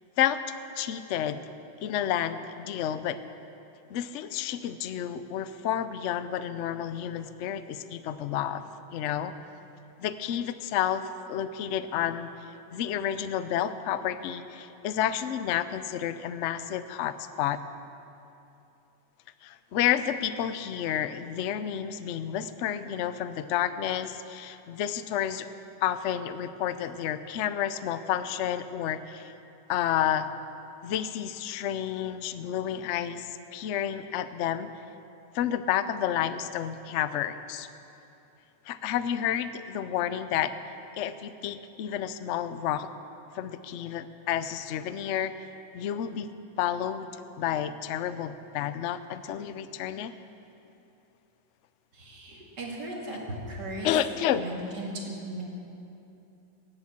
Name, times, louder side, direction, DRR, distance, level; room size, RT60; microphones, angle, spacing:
voice 1, 0.8-1.4 1.8-3.2 3.9-8.6 8.9-9.3 10.0-12.3 12.7-17.6 19.4-25.5 25.8-29.3 29.7-30.3 30.8-34.7 35.3-37.7 38.7-40.5 41.0-42.9 43.3-45.3 45.7-46.3 46.6-50.1 53.8-54.4, left 10 dB, 75° left, 12 dB, 0.6 m, -30 dB
voice 2, 51.9-53.2 53.5-53.9 54.4-55.4, right 1 dB, 70° right, -2 dB, 3.0 m, -37 dB
18.0 x 8.2 x 7.4 m, 2.8 s
omnidirectional pair, 1.9 m